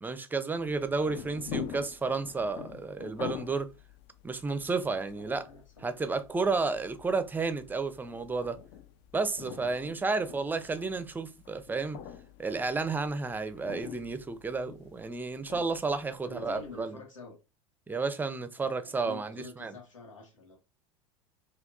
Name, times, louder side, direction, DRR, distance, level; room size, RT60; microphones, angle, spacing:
voice 1, 0.0-3.7 4.2-5.5 5.8-8.6 9.1-12.0 12.4-17.0 17.9-19.7, right 4 dB, 10° right, 0.5 m, -32 dB
sound 1, 0.6-16.8, left 8 dB, 55° left, 0.5 m, -46 dB
voice 2, 5.1-5.9 16.2-17.4 18.5-20.6, left 2 dB, 80° left, 1.3 m, -47 dB
5.6 x 2.3 x 2.4 m
figure-of-eight pair, 80°, 16 cm